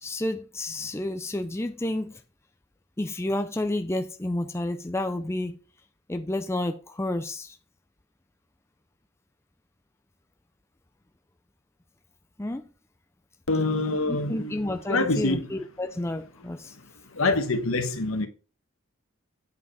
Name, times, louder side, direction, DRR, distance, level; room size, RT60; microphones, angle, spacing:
voice 1, 0.0-2.1 3.0-5.6 6.1-7.6 12.4-12.6 14.1-16.7, left 1 dB, 10° left, 0.5 m, -30 dB
voice 2, 13.5-14.5 14.9-15.4 17.2-18.3, left 2 dB, 75° left, 1.4 m, -25 dB
8.3 x 5.0 x 4.9 m
head